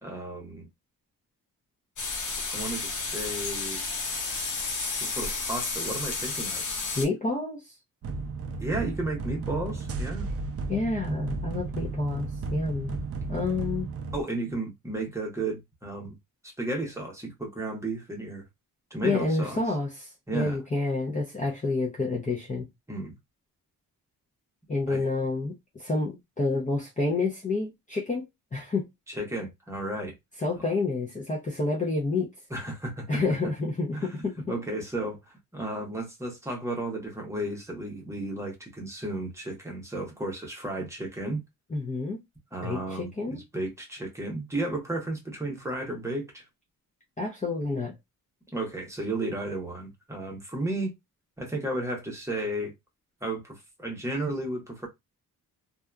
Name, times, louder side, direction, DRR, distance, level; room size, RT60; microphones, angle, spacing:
voice 1, 0.0-0.7 2.5-3.8 4.9-6.6 8.6-10.3 14.1-16.2 16.4-18.4 18.9-19.6 20.3-20.6 22.9-23.1 24.9-25.0 29.1-30.1 32.5-33.2 33.9-34.1 34.5-35.2 35.5-41.4 42.5-46.4 48.5-50.9 51.4-52.7 53.2-54.9, right 2 dB, 10° right, 0.9 m, -33 dB
sound 1, 2.0-7.1, left 3 dB, 55° left, 0.9 m, -32 dB
voice 2, 6.9-7.6 10.7-13.0 13.3-13.9 19.0-22.7 24.7-28.2 28.5-28.9 30.4-32.3 33.1-34.4 41.7-42.2 42.6-43.4 47.2-47.9, left 3 dB, 20° left, 0.6 m, -29 dB
sound 2, 8.0-14.2, right 3 dB, 40° right, 0.4 m, -34 dB
2.7 x 2.4 x 2.3 m
wide cardioid pair, 130°, 35 cm